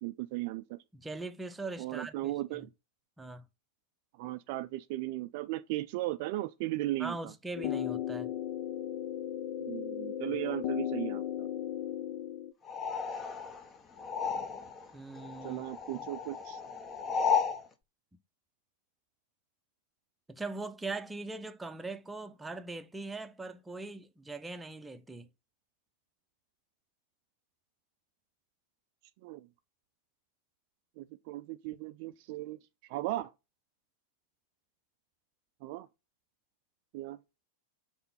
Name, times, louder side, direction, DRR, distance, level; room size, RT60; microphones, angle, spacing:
voice 1, 0.0-0.8 1.8-2.7 4.2-7.3 9.6-11.5 15.4-16.6 29.2-29.5 31.0-33.3 35.6-35.9 36.9-37.2, right 16 dB, 45° right, 0.3 m, -37 dB
voice 2, 0.9-2.6 3.2-3.5 7.0-8.3 14.9-15.6 15.9-16.1 20.3-25.3, right 3 dB, 10° right, 0.7 m, -41 dB
sound 1, 7.5-12.5, left 11 dB, 45° left, 0.6 m, -36 dB
sound 2, 12.7-14.9 15.2-17.6, left 6 dB, 25° left, 0.9 m, -34 dB
5.6 x 4.3 x 5.5 m
figure-of-eight pair, 90°, 0 cm